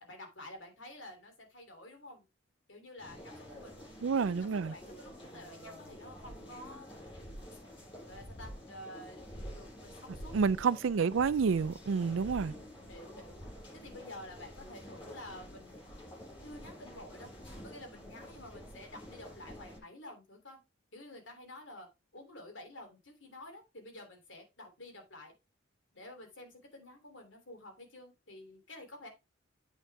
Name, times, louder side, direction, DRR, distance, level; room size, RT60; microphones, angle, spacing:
voice 1, 0.1-2.2 2.7-3.8 4.4-6.9 7.5-7.6 8.1-9.2 9.5-10.3 12.3-13.4 13.7-15.8 16.4-17.3 17.6-20.6 20.9-21.9 22.1-25.3 25.9-29.1, left 1 dB, 70° left, 3.0 m, -50 dB
sound 1, 3.0-19.8, equal, 25° left, 5.3 m, -48 dB
voice 2, 4.0-4.7 10.3-12.5, right 5 dB, 80° right, 0.4 m, -29 dB
8.2 x 6.4 x 3.4 m
head